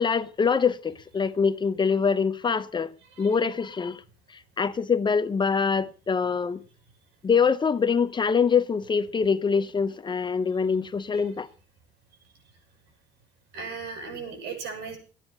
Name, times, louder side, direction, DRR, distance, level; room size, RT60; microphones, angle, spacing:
voice 1, 0.0-2.9 3.2-4.0 4.6-6.6 7.2-11.5, left 5 dB, 25° left, 0.9 m, -24 dB
voice 2, 13.5-15.0, right 5 dB, 80° right, 7.3 m, -37 dB
14.0 x 10.0 x 6.9 m
cardioid pair, 110°, 17 cm